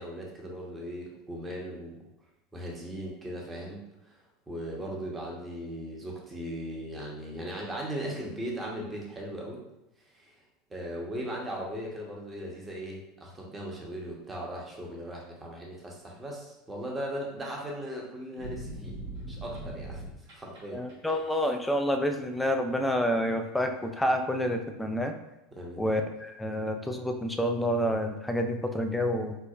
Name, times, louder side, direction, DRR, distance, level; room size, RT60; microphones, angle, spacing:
voice 1, 0.0-1.9 2.5-4.2 4.5-9.6 10.1-10.4 10.7-18.9 19.3-20.1 20.3-20.8 25.5-25.9, equal, 20° right, -2 dB, 0.9 m, -38 dB
sound 1, 18.4-20.6 20.9-21.4, right 1 dB, 65° right, 1.4 m, -40 dB
voice 2, 20.7-25.1 25.8-29.4, equal, 5° left, 5 dB, 0.4 m, -28 dB
4.6 x 2.1 x 2.4 m, 0.91 s
hypercardioid pair, 80°, 0 cm